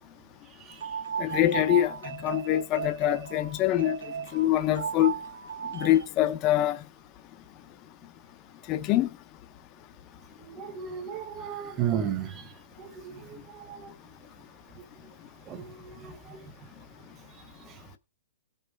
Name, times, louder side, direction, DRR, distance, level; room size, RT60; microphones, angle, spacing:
sound 1, 0.7-6.1, right 7 dB, 75° right, 1.7 m, -36 dB
voice 1, 1.2-4.0 4.3-5.1 5.7-6.8 8.7-9.1, left 13 dB, 20° left, 0.6 m, -24 dB
voice 2, 10.4-12.5 12.8-13.9 15.5-16.5 17.6-17.8, right 9 dB, 15° right, 1.0 m, -35 dB
17.0 x 5.6 x 4.5 m
hypercardioid pair, 170°, 0 cm